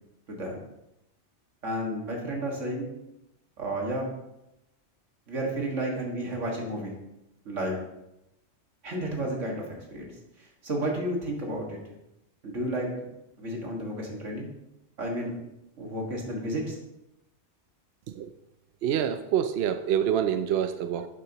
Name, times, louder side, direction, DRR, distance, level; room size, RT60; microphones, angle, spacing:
voice 1, 0.3-0.6 1.6-2.9 3.6-4.1 5.3-6.9 7.5-7.9 8.8-9.6 9.9-10.1 10.4-11.8 12.4-12.9 13.4-14.5 15.0-15.4 15.8-16.8, right 1 dB, 80° right, -1 dB, 2.2 m, -32 dB
voice 2, 18.8-21.1, right 9 dB, 65° right, 9 dB, 0.7 m, -26 dB
11.5 x 7.3 x 2.9 m, 0.89 s
omnidirectional pair, 1.2 m